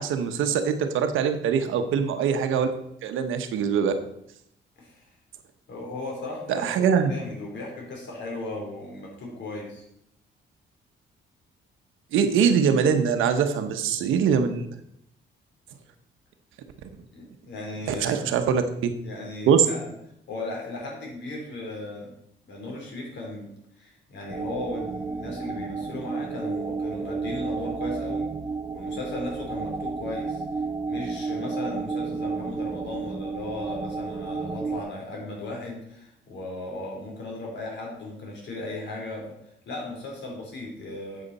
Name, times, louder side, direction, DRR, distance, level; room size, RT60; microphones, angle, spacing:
voice 1, 0.0-2.7 3.0-3.9 6.5-7.1 12.1-14.7 17.9-18.9 19.5-19.7, right 7 dB, 85° right, 7 dB, 1.0 m, -23 dB
voice 2, 4.8-5.1 5.7-9.8 17.1-18.5 19.0-19.9 20.3-22.1 22.4-23.5 23.8-28.3 28.7-30.4 30.9-39.4 39.7-41.2, left 2 dB, 65° left, -1 dB, 3.7 m, -36 dB
sound 1, 24.3-34.8, right 4 dB, 20° right, 0.5 m, -32 dB
8.3 x 7.9 x 4.2 m, 0.74 s
cardioid pair, 90°, 20 cm